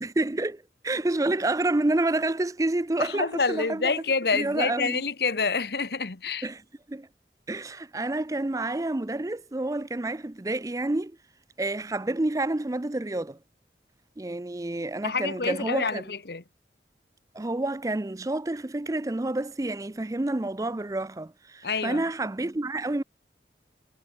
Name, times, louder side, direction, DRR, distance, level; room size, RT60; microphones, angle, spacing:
voice 1, 0.0-4.0 4.3-5.0 6.4-6.6 6.9-7.1 7.5-11.2 11.6-13.4 14.2-16.0 17.3-23.0, right 2 dB, 20° right, 0.5 m, -29 dB
voice 2, 3.0-6.5 15.0-16.4 21.6-22.0, left 4 dB, 65° left, 1.1 m, -27 dB
head